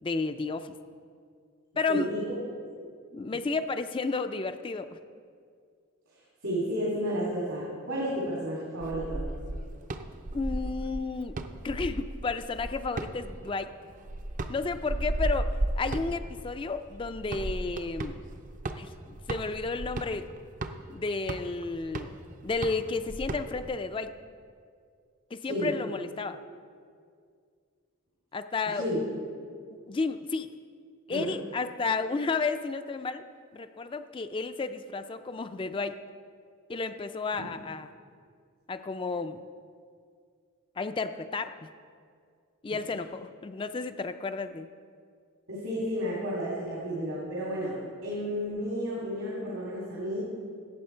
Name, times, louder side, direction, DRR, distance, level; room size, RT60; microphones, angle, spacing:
voice 1, 0.0-0.8 1.8-2.1 3.1-5.0 10.3-11.4 11.6-13.7 14.5-18.1 18.7-20.3 20.9-22.1 22.4-24.1 25.3-26.4 28.3-28.8 29.7-30.5 31.1-33.2 33.5-36.0 36.7-37.9 38.7-39.4 40.8-41.5 42.6-44.7, left 4 dB, 25° left, 9 dB, 0.3 m, -32 dB
voice 2, 1.9-2.2 6.1-9.2 25.4-25.7 28.7-29.0 31.1-31.3 37.3-37.4 42.8-43.0 45.5-50.2, equal, 80° right, -6 dB, 2.7 m, -32 dB
sound 1, 8.8-23.8, right 1 dB, 40° right, 0.5 m, -35 dB
16.5 x 7.4 x 4.4 m, 2.1 s
head